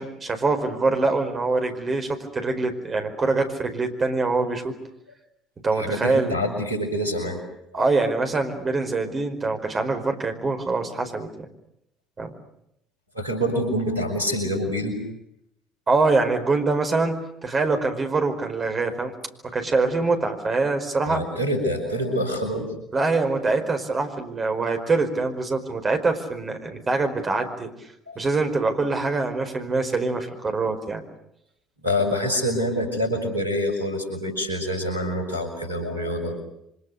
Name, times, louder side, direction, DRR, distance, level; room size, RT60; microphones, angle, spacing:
voice 1, 0.0-4.7 5.6-6.3 7.7-11.5 12.2-12.3 15.9-19.1 19.4-21.2 22.9-27.7 28.1-31.0, right 3 dB, 30° right, 6 dB, 4.9 m, -24 dB
voice 2, 5.7-7.4 7.7-8.0 13.1-15.0 21.0-22.7 28.1-28.2 31.8-36.4, equal, 85° right, 5 dB, 5.7 m, -26 dB
29.0 x 25.5 x 6.7 m, 0.78 s
figure-of-eight pair, 55°, 0 cm